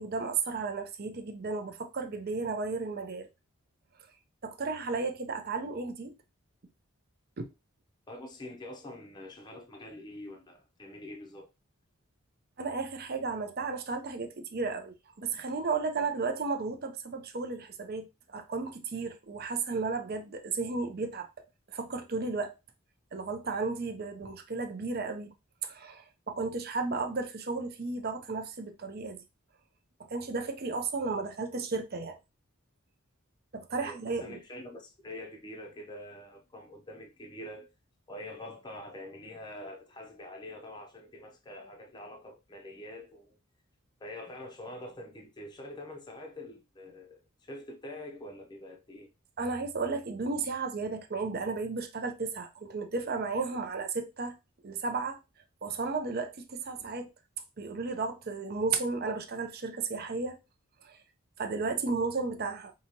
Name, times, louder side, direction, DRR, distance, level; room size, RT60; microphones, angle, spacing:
voice 1, 0.0-3.3 4.4-6.1 7.4-7.5 12.6-21.3 21.7-22.5 23.1-25.3 25.6-29.2 30.1-32.2 33.5-34.4 49.4-54.4 54.6-55.2 55.6-57.1 57.6-60.4 60.8-61.0 61.4-62.7, right 4 dB, 45° right, 0.6 m, -34 dB
voice 2, 8.1-11.5 33.7-37.7 38.1-43.4 44.0-49.1, left 1 dB, 20° left, 0.6 m, -45 dB
4.8 x 2.9 x 2.8 m
head